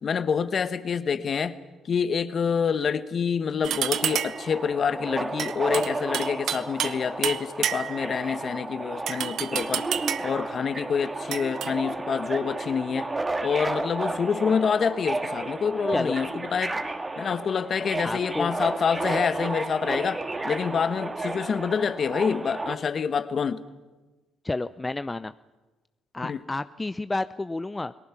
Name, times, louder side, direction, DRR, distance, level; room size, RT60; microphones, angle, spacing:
voice 1, 0.0-1.6 1.8-9.9 10.2-13.1 13.4-16.8 17.2-23.6 26.2-26.4, left 6 dB, 50° left, 12 dB, 1.3 m, -27 dB
sound 1, 3.6-4.5 5.4-7.0 7.2-8.1 9.1-10.4 11.3-11.7, right 10 dB, 65° right, 0.9 m, -29 dB
Subway metro underground, 3.9-22.7, right 2 dB, 25° right, 2.2 m, -32 dB
voice 2, 18.0-18.6 24.4-25.3 26.1-27.9, left 2 dB, 20° left, 13 dB, 0.6 m, -30 dB
29.5 x 19.0 x 6.0 m, 1.2 s
hypercardioid pair, 60°, 0 cm